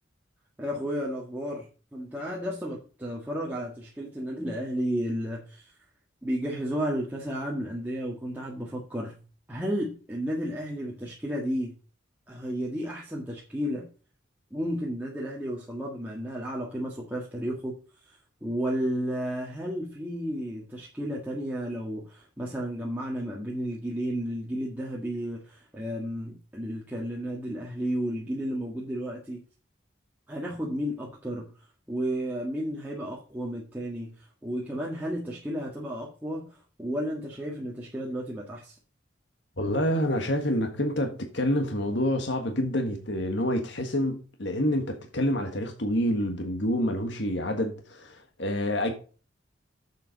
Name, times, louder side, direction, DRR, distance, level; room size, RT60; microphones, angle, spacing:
voice 1, 0.6-5.7 6.2-9.2 9.5-11.7 12.3-13.9 14.5-17.7 18.0-29.4 30.3-31.5 31.9-38.8, equal, 10° right, 1.7 m, -32 dB
voice 2, 39.6-48.9, equal, 65° left, 1.6 m, -27 dB
7.6 x 7.0 x 5.2 m
head